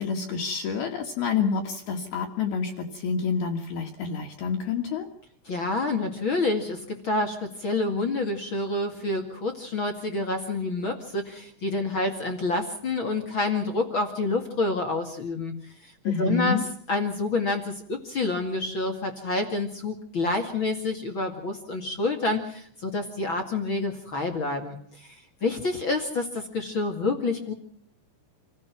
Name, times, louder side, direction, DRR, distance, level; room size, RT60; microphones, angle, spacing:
voice 1, 0.0-5.1 16.0-16.6, left 5 dB, 60° left, 3 dB, 3.3 m, -28 dB
voice 2, 5.5-16.6 16.9-27.5, left 2 dB, 45° left, 4 dB, 1.7 m, -28 dB
28.0 x 17.0 x 6.0 m, 0.64 s
omnidirectional pair, 5.5 m